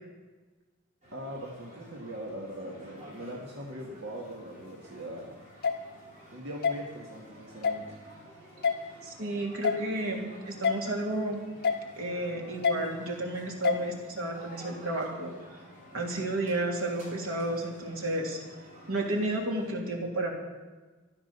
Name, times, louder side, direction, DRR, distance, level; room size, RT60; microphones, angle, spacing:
sound 1, 1.0-19.7, equal, 35° right, 6.3 m, -52 dB
voice 1, 1.1-5.4 6.3-8.0, right 1 dB, 55° right, -2 dB, 2.0 m, -41 dB
sound 2, 5.6-5.8 6.6-6.8 7.6-7.8 8.6-8.8 9.6-9.8 10.6-10.8 11.6-11.8 12.6-12.8 13.6-13.8, left 6 dB, 45° left, 1.5 m, -25 dB
voice 2, 9.0-11.4 12.0-15.3 15.9-18.4 18.9-20.3, right 1 dB, 80° right, 0 dB, 3.2 m, -32 dB
15.0 x 11.5 x 6.8 m, 1.3 s
head